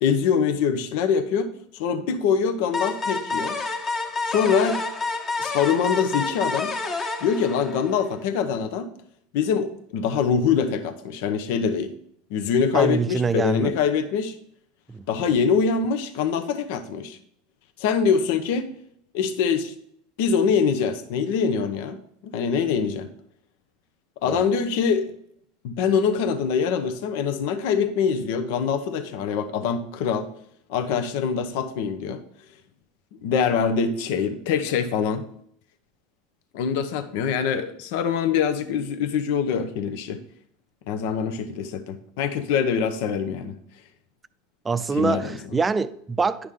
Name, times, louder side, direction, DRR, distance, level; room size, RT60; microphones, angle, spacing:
voice 1, 0.0-3.6 4.3-4.8 5.4-6.7 7.2-8.9 9.3-11.9 12.3-14.3 15.1-17.2 17.8-18.7 19.1-19.7 20.2-23.1 24.2-25.0 25.6-30.3 30.7-32.2 33.2-35.2 36.5-40.2 40.9-43.6 45.0-45.4, left 6 dB, 70° left, 0.8 m, -24 dB
sound 1, 2.7-8.2, left 3 dB, 30° left, 1.4 m, -29 dB
voice 2, 12.7-13.8 14.9-15.0 24.2-24.4 44.6-46.5, right 4 dB, 20° right, 0.5 m, -25 dB
10.0 x 6.1 x 3.8 m
supercardioid pair, 110°, 0 cm